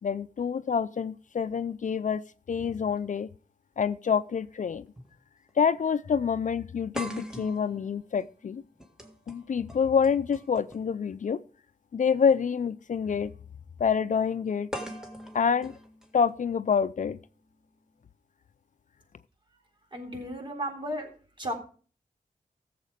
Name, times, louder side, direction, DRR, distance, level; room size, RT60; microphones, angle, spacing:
voice 1, 0.0-2.2 2.5-3.3 3.8-4.9 5.6-8.6 9.3-11.4 11.9-13.3 13.8-14.7 15.3-15.7 16.1-17.2, left 6 dB, 60° left, 14 dB, 0.5 m, -27 dB
sound 1, 3.7-3.8 5.0-5.1 5.5-5.6 6.9-11.0 12.2-12.3 14.7-16.7, equal, 5° right, 1.8 m, -41 dB
voice 2, 19.9-21.1 21.4-21.5, equal, 35° right, 2 dB, 3.9 m, -34 dB
14.5 x 7.5 x 5.0 m, 0.40 s
wide cardioid pair, 80°, 15 cm